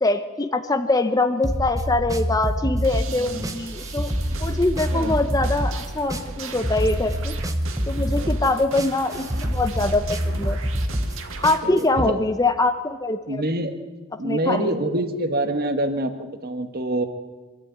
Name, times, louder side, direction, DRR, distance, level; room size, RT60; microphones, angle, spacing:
voice 1, 0.0-4.1 4.4-7.3 7.9-10.6 11.4-13.4 14.2-14.7, left 2 dB, 15° left, 7 dB, 0.8 m, -23 dB
sound 1, 1.4-12.1, equal, 15° right, 1.1 m, -26 dB
sound 2, 2.8-11.6, right 3 dB, 60° right, 2.1 m, -37 dB
voice 2, 3.1-3.6 4.9-5.1 8.0-8.3 11.6-12.2 13.3-13.8 14.2-17.1, right 1 dB, 45° right, 7 dB, 1.7 m, -26 dB
24.5 x 13.0 x 9.4 m, 1.3 s
head